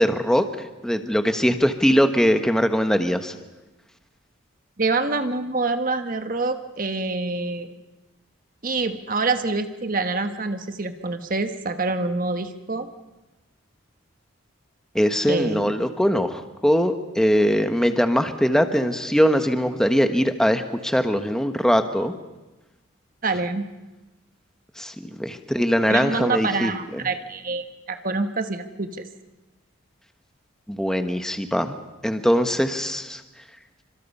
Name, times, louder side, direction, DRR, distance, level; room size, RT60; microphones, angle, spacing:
voice 1, 0.0-3.3 14.9-22.1 24.8-26.7 30.7-31.8 32.0-33.2, equal, 5° left, 7 dB, 1.2 m, -21 dB
voice 2, 4.8-7.7 8.6-12.9 15.3-15.7 23.2-23.7 25.9-29.1, right 3 dB, 40° right, 8 dB, 1.2 m, -26 dB
30.0 x 25.5 x 5.5 m, 1.1 s
head